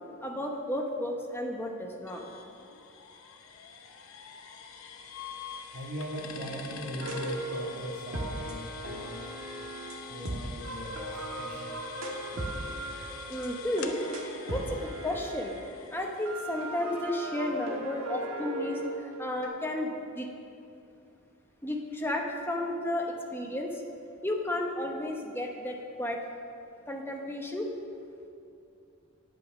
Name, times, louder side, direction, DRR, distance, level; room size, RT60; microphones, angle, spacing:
voice 1, 0.2-2.2 13.3-14.0 14.4-15.6 15.9-20.3 21.6-23.8 24.2-26.2 26.9-27.7, left 1 dB, 10° left, 1 dB, 0.9 m, -33 dB
sound 1, 2.1-17.7, left 6 dB, 70° left, 0.8 m, -46 dB
voice 2, 5.7-9.2 10.1-11.8, equal, 90° right, -6 dB, 1.8 m, -40 dB
sound 2, 7.0-15.7 16.3-19.5, right 1 dB, 65° right, 1.5 m, -38 dB
9.4 x 8.3 x 6.1 m, 2.7 s
head